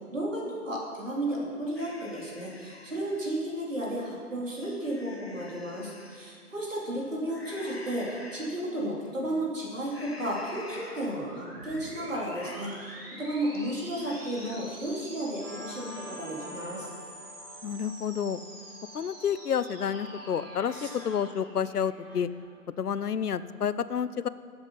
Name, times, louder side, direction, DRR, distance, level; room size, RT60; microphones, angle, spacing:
voice 1, 0.1-16.9 20.7-20.9, right 1 dB, 55° right, -3 dB, 3.2 m, -33 dB
sound 1, 1.8-3.4 3.8-3.9 4.4-6.2 7.3-8.6 9.0-9.4 9.9-11.4 11.8-11.9 12.2-13.0 13.3-13.7 14.0-14.9, left 2 dB, 40° left, 0.9 m, -48 dB
sound 2, 10.8-22.5, right 1 dB, 40° right, 2.0 m, -47 dB
Guitar, 15.4-22.4, equal, 15° left, 3.1 m, -47 dB
voice 2, 17.6-18.4 18.9-22.3 22.8-24.3, left 8 dB, 75° left, 15 dB, 0.6 m, -30 dB
11.0 x 8.1 x 5.6 m, 2.2 s
figure-of-eight pair, 175°, 46 cm